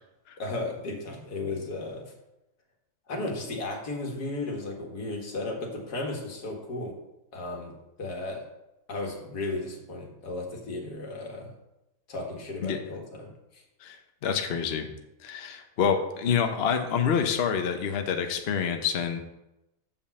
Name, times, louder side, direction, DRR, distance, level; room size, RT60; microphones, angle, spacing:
voice 1, 0.4-2.1 3.1-7.0 7.3-8.5 8.9-11.5 12.1-13.6, left 2 dB, 80° left, 1 dB, 2.2 m, -35 dB
voice 2, 14.2-14.9 15.2-19.2, left 7 dB, 50° left, 5 dB, 0.8 m, -27 dB
7.0 x 5.3 x 7.0 m, 0.94 s
omnidirectional pair, 1.7 m